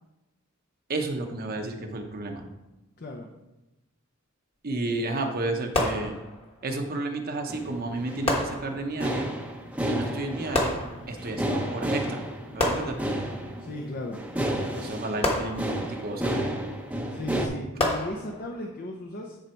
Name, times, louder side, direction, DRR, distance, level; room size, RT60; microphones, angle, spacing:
voice 1, 0.9-2.4 4.6-6.2 6.6-9.3 9.9-10.8 11.1-12.2 12.5-13.0 14.8-15.8 16.0-16.4, right 2 dB, 45° right, 4 dB, 0.9 m, -31 dB
voice 2, 3.0-3.4 13.6-14.3 17.1-19.4, left 1 dB, 45° left, 0 dB, 0.7 m, -36 dB
sound 1, 5.7-6.7 8.3-9.1 10.5-11.4 12.6-13.5 15.2-16.1 17.8-18.7, left 1 dB, 30° left, 1.3 m, -29 dB
sound 2, 7.5-17.5, right 1 dB, 5° right, 0.7 m, -32 dB
10.5 x 4.0 x 4.5 m, 0.98 s
head